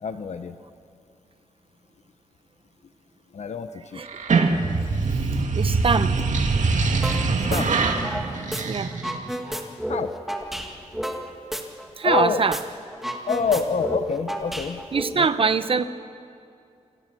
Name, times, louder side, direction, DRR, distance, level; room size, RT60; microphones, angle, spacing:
voice 1, 0.0-0.6 3.3-4.0 7.5-7.7 9.9-10.1 12.0-12.4 13.3-14.8 15.2-15.3, left 5 dB, 70° left, 9 dB, 1.0 m, -26 dB
sound 1, 4.1-9.4, right 4 dB, 85° right, 2.0 m, -23 dB
voice 2, 5.1-6.3 8.6-8.9 12.0-12.6 14.9-15.8, right 5 dB, 50° right, 11 dB, 0.9 m, -23 dB
sound 2, 7.0-7.2 7.5-8.6 8.9-12.2 12.5-12.6 12.9-15.0, equal, ahead, 2.0 m, -31 dB
28.0 x 27.0 x 6.2 m, 2.4 s
wide cardioid pair, 165°, 12 cm